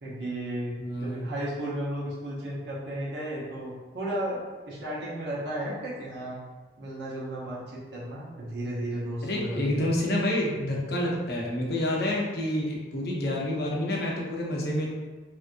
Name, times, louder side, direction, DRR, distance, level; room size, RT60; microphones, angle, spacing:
voice 1, 0.0-4.4 4.7-6.4 6.8-9.9, right 1 dB, 75° right, -7 dB, 0.9 m, -34 dB
voice 2, 0.8-1.3 9.2-14.9, left 1 dB, 60° left, -2 dB, 0.6 m, -28 dB
3.0 x 2.7 x 2.5 m, 1.3 s
head